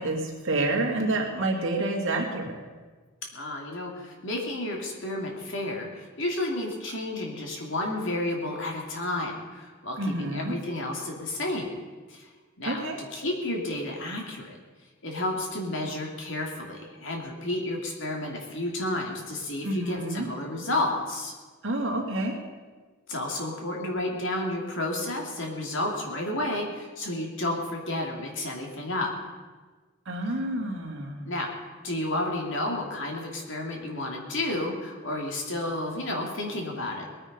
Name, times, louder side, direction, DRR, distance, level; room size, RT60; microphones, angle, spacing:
voice 1, 0.0-2.6 10.0-10.5 12.6-13.0 19.6-20.3 21.6-22.4 30.1-31.3, right 2 dB, 60° right, 0 dB, 2.5 m, -28 dB
voice 2, 3.3-11.7 12.1-12.3 12.6-14.6 15.0-21.3 23.1-29.1 31.2-31.5 31.8-37.1, left 1 dB, 60° left, 0 dB, 2.8 m, -31 dB
20.0 x 9.6 x 5.4 m, 1.4 s
head